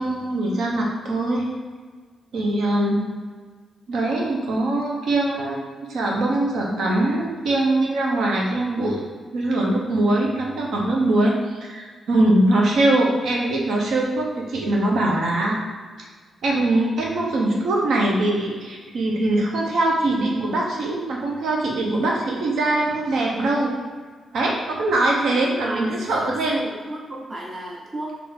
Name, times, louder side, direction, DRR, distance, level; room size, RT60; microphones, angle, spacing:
voice 1, 0.0-1.5 2.3-3.1 3.9-9.0 9.3-15.6 16.4-23.7 24.3-26.6, right 2 dB, 75° right, -2 dB, 0.8 m, -22 dB
voice 2, 25.3-28.2, right 1 dB, 30° right, -2 dB, 0.6 m, -33 dB
3.6 x 2.7 x 4.3 m, 1.5 s
cardioid pair, 120°, 0 cm